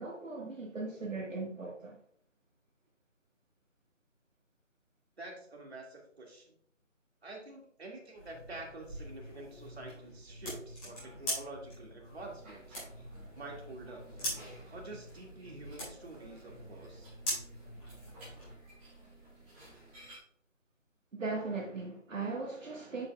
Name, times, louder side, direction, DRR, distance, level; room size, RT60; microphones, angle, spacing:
voice 1, 0.0-2.0 21.1-23.1, right 3 dB, 80° right, 1.6 m, -38 dB
voice 2, 5.2-6.5 7.2-12.8 13.3-14.0 14.7-17.1, right 2 dB, 55° right, 2.3 m, -47 dB
sound 1, 8.1-18.5, equal, 10° left, 2.4 m, -43 dB
sound 2, 12.0-20.2, right 1 dB, 10° right, 2.7 m, -55 dB
8.5 x 6.7 x 2.3 m
figure-of-eight pair, 165°, 38 cm